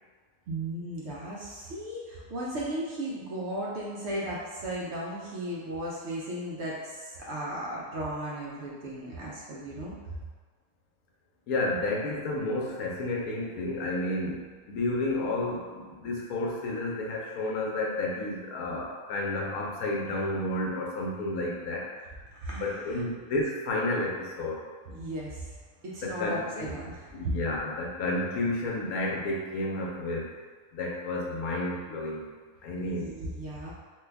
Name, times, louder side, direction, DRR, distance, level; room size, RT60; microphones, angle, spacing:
voice 1, 0.5-10.2 22.3-23.0 24.9-25.6 25.8-27.1 32.8-33.7, right 1 dB, 65° right, -5 dB, 0.7 m, -36 dB
voice 2, 11.5-21.9 22.5-24.6 26.0-26.7 27.1-30.3 30.7-32.3 32.6-33.2, left 2 dB, 80° left, -2 dB, 1.1 m, -31 dB
3.2 x 2.2 x 3.3 m, 1.5 s
omnidirectional pair, 1.5 m